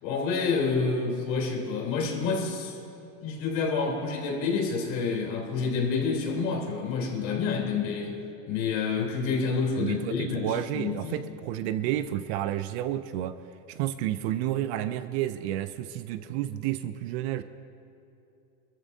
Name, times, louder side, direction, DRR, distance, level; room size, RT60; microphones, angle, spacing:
voice 1, 0.0-2.8 3.2-8.2 8.5-11.2, left 4 dB, 80° left, -1 dB, 3.5 m, -28 dB
voice 2, 9.8-13.4 13.7-17.4, right 12 dB, 45° right, 12 dB, 0.4 m, -30 dB
25.5 x 14.0 x 2.7 m, 2.7 s
supercardioid pair, 155°, 50 cm